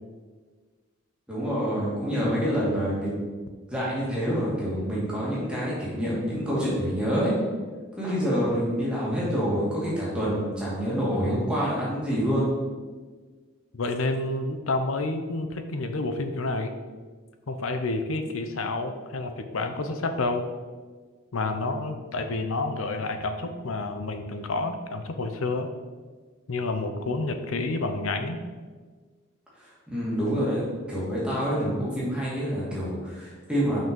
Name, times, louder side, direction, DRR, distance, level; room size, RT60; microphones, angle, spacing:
voice 1, 1.3-3.1 3.7-7.4 7.9-12.5 29.6-33.8, equal, 5° right, -7 dB, 2.2 m, -27 dB
voice 2, 13.7-16.7 17.5-20.5 21.3-25.7 26.5-28.4, left 2 dB, 80° left, 7 dB, 0.7 m, -29 dB
5.9 x 5.6 x 5.3 m, 1.4 s
head